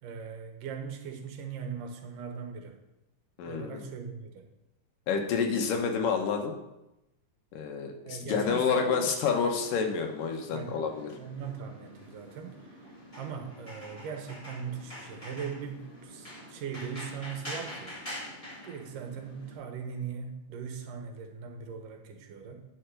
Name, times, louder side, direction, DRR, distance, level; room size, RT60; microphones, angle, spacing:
voice 1, 0.0-2.8 3.4-4.5 8.0-9.1 10.5-10.8 11.2-12.6 13.2-17.9 18.6-22.7, right 6 dB, 80° right, 4 dB, 2.7 m, -39 dB
voice 2, 3.4-3.8 5.1-6.5 7.5-11.1, left 6 dB, 85° left, 3 dB, 2.8 m, -29 dB
sound 1, 9.5-19.6, left 1 dB, 10° left, 2.9 m, -45 dB
9.5 x 5.7 x 6.4 m, 0.95 s
omnidirectional pair, 3.8 m